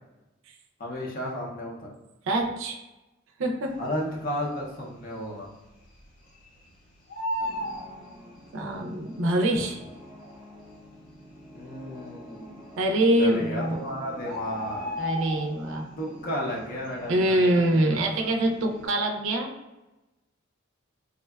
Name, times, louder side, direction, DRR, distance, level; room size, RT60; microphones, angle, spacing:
voice 1, 0.8-1.9 3.8-5.5 11.5-12.6 13.2-14.9 16.0-18.3, equal, 45° left, -3 dB, 0.5 m, -33 dB
voice 2, 2.2-2.8 3.4-3.8 8.5-9.9 12.8-13.8 15.0-15.9 17.1-19.5, right 1 dB, 70° right, 2 dB, 0.4 m, -24 dB
Bird, 4.2-4.8 5.1-5.2 5.5-6.7 6.9-8.8 9.6-9.7 10.3-10.4 10.6-10.7 11.4-11.8 12.8-12.9 13.3-13.4 13.6-15.9 16.2-16.5 16.8-18.2 18.6-18.8, equal, 75° left, 1.0 m, -34 dB
sound 1, 7.4-18.9, equal, 15° right, 0.8 m, -48 dB
3.5 x 2.1 x 2.2 m, 1.0 s
head